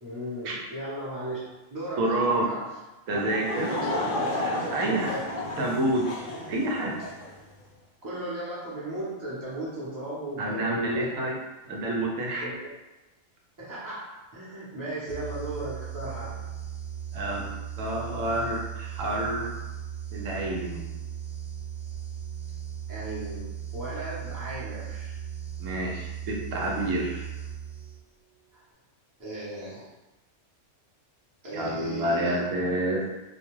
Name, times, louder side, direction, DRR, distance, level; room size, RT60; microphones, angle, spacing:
voice 1, 0.0-1.4 1.7-2.7 3.8-4.3 4.8-5.2 8.0-11.1 12.4-12.7 13.6-16.4 22.9-25.2 28.5-28.6 29.2-29.9 31.4-32.4, right 1 dB, 20° right, -9 dB, 0.7 m, -36 dB
voice 2, 2.0-2.5 3.1-3.9 4.4-5.1 5.6-6.1 6.5-6.9 10.4-11.3 11.7-12.5 17.1-17.5 17.8-19.5 20.1-21.0 25.6-27.3 31.5-33.1, right 1 dB, 75° right, -1 dB, 0.9 m, -28 dB
Laughter / Crowd, 3.1-7.3, left 1 dB, 60° left, 0.5 m, -32 dB
sound 1, 15.1-28.2, right 9 dB, 50° right, 0.6 m, -37 dB
2.3 x 2.3 x 3.0 m, 1.0 s
omnidirectional pair, 1.3 m